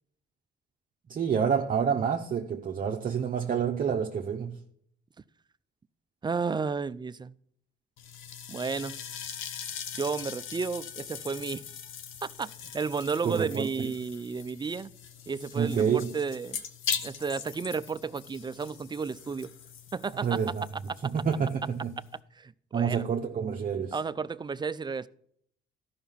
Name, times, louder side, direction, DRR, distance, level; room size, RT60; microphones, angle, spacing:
voice 1, 1.1-4.6 13.2-13.9 15.5-16.1 20.2-20.6 21.0-21.9 22.7-24.0, right 7 dB, 45° right, 0.8 m, -28 dB
voice 2, 6.2-7.3 8.5-9.0 10.0-11.7 12.2-14.9 15.3-16.6 17.0-19.5 19.9-20.4 20.9-21.1 22.4-23.1 23.9-25.1, right 5 dB, 20° right, 0.4 m, -32 dB
sound 1, 8.0-22.2, left 8 dB, 90° left, 0.9 m, -41 dB
13.0 x 5.7 x 5.5 m
cardioid pair, 90°, 20 cm